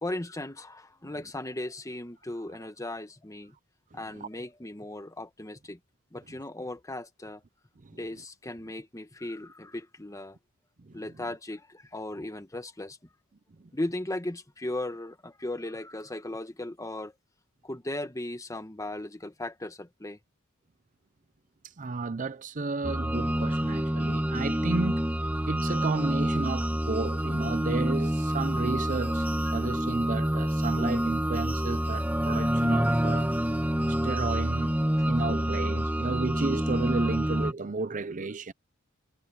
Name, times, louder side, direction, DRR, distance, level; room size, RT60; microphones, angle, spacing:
voice 1, 0.0-3.5 3.9-5.8 6.1-7.4 7.9-10.4 10.9-13.0 13.7-17.1 17.6-20.2 25.8-25.9 35.0-35.1, left 1 dB, 15° left, 1.3 m, -37 dB
voice 2, 21.8-25.0 25.5-33.3 33.9-34.8 35.1-38.5, right 3 dB, 40° right, 0.6 m, -33 dB
sound 1, 22.8-37.5, equal, 10° right, 1.4 m, -27 dB
head